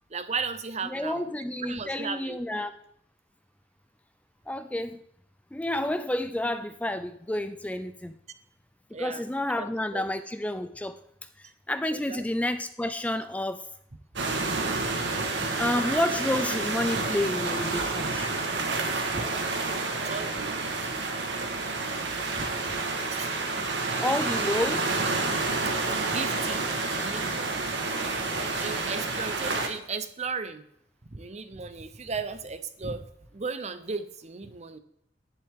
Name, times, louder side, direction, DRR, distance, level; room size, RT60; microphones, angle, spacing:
voice 1, 0.1-1.3 1.6-2.6 8.9-9.2 9.5-10.0 11.9-12.2 15.4-15.5 19.1-19.3 20.0-20.9 22.4-22.5 23.1-23.3 25.6-27.7 28.6-30.6 31.1-33.1 33.3-34.8, right 4 dB, 40° right, 12 dB, 0.8 m, -36 dB
voice 2, 0.9-2.7 4.5-5.0 5.5-8.2 9.0-11.0 11.4-13.7 15.6-18.3 24.0-25.0, left 1 dB, 10° left, 10 dB, 0.4 m, -30 dB
sound 1, 14.2-29.7, right 3 dB, 70° right, 1.6 m, -29 dB
10.5 x 10.5 x 3.7 m, 0.72 s
head